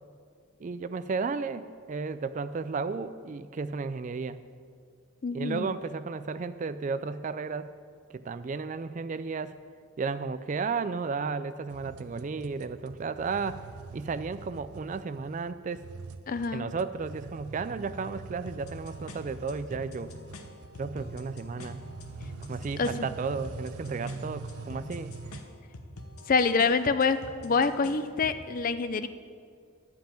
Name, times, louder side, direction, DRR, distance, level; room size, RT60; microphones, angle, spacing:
voice 1, 0.6-4.4 5.3-7.7 8.1-9.6 10.0-13.7 13.9-15.9 16.5-20.1 20.8-21.8 22.5-25.2, right 4 dB, 35° right, 13 dB, 0.3 m, -33 dB
voice 2, 5.2-5.7 16.3-16.7 22.8-22.9 26.3-27.2 27.4-29.1, left 4 dB, 40° left, 11 dB, 0.4 m, -26 dB
sound 1, 11.7-25.4, right 4 dB, 85° right, 0.5 m, -44 dB
sound 2, 18.5-28.4, left 2 dB, 85° left, 1.1 m, -47 dB
11.5 x 5.6 x 8.8 m, 2.1 s
head